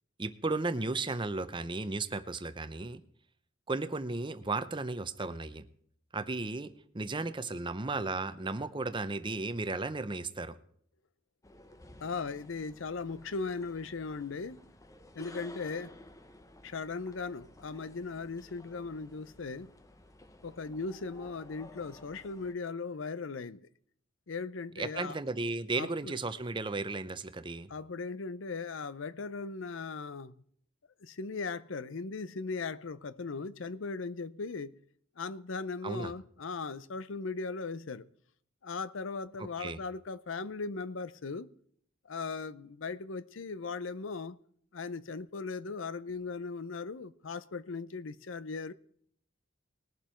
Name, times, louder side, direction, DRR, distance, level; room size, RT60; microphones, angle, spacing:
voice 1, 0.2-3.0 3.7-5.7 6.1-10.5 24.8-27.7 35.8-36.1 39.4-39.8, right 3 dB, 25° right, 0.7 m, -35 dB
sound 1, 11.4-22.5, left 1 dB, 15° left, 0.8 m, -54 dB
voice 2, 12.0-14.6 15.2-16.0 16.6-19.7 20.4-23.7 24.3-25.2 25.8-26.1 27.7-30.3 31.0-34.8 35.2-38.0 38.6-41.5 42.1-44.4 44.7-48.7, left 4 dB, 65° left, 0.6 m, -38 dB
20.0 x 7.3 x 4.4 m
head